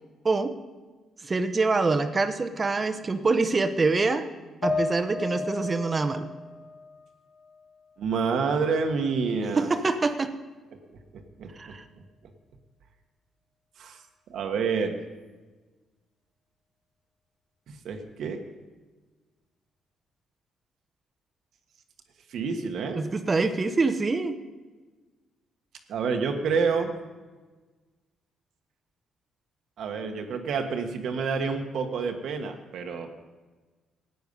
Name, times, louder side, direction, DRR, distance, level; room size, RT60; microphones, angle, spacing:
voice 1, 1.2-4.2 4.6-6.3 9.6-10.3 11.6-11.8 23.0-24.4, right 3 dB, 30° right, 9 dB, 0.9 m, -25 dB
sound 1, 4.6-8.0 8.4-9.4, left 3 dB, 85° left, 4.0 m, -34 dB
voice 2, 8.0-9.8 11.4-11.7 13.8-14.0 14.3-15.0 17.8-18.4 22.3-23.0 25.9-26.9 29.8-33.1, right 5 dB, 70° right, 5 dB, 1.3 m, -28 dB
13.5 x 9.3 x 5.4 m, 1.3 s
cardioid pair, 90°, 0 cm